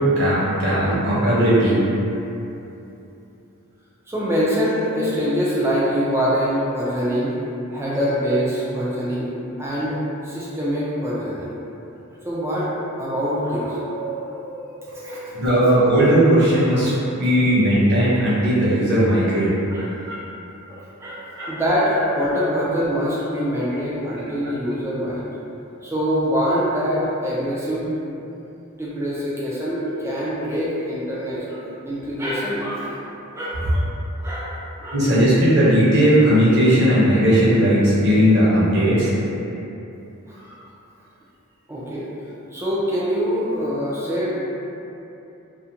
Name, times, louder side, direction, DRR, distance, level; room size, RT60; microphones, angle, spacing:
voice 1, 0.0-1.8 15.3-19.5 20.1-20.2 21.4-21.5 34.9-39.1, equal, 50° right, -9 dB, 0.7 m, -17 dB
voice 2, 4.1-7.3 7.7-9.3 9.6-10.0 10.2-11.5 12.2-12.7 13.0-15.4 16.8-17.1 19.7-19.9 20.7-25.2 25.8-27.9 28.7-33.0 33.3-33.8 34.2-34.5 34.8-35.0 40.3-40.4 41.7-42.1 42.5-44.4, equal, 10° right, -8 dB, 0.3 m, -24 dB
2.4 x 2.1 x 2.7 m, 2.9 s
head